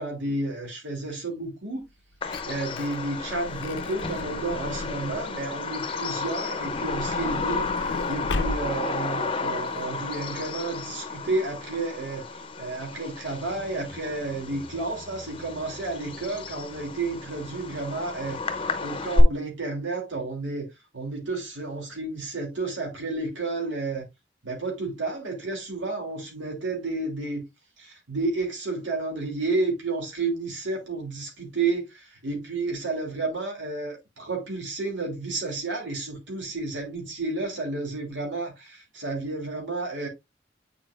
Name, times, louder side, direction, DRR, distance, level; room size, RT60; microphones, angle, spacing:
voice 1, 0.0-1.9 2.4-20.7 20.9-24.1 24.4-27.4 27.8-40.1, right 3 dB, 90° right, 2.6 m, -31 dB
Truck / Door, 1.9-5.4 6.4-9.0 9.7-9.8 10.0-10.1, left 2 dB, 80° left, 0.5 m, -35 dB
Bird vocalization bird call bird song, 2.2-19.2, left 3 dB, 30° left, 0.6 m, -32 dB
8.9 x 4.6 x 2.4 m
head